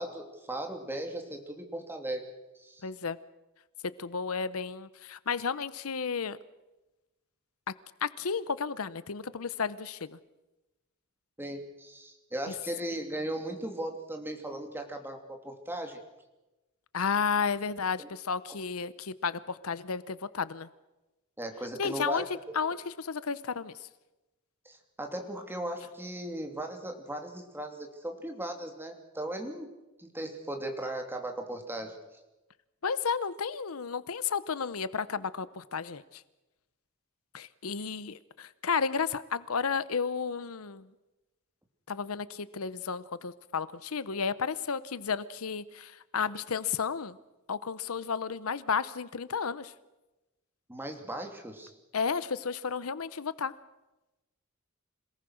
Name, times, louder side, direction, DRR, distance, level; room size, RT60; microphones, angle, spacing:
voice 1, 0.0-2.2 2.5-2.8 11.4-16.0 18.0-18.1 21.4-22.2 24.6-29.7 30.0-31.9 50.7-51.7, right 1 dB, 10° right, 3 dB, 2.9 m, -37 dB
voice 2, 2.8-3.2 3.8-6.4 7.7-7.8 8.0-10.2 16.9-20.7 21.8-22.2 22.5-23.9 32.8-36.2 37.3-40.9 41.9-47.2 47.5-49.7 51.9-53.5, left 5 dB, 85° left, 16 dB, 0.8 m, -32 dB
26.5 x 18.5 x 6.4 m, 1.0 s
head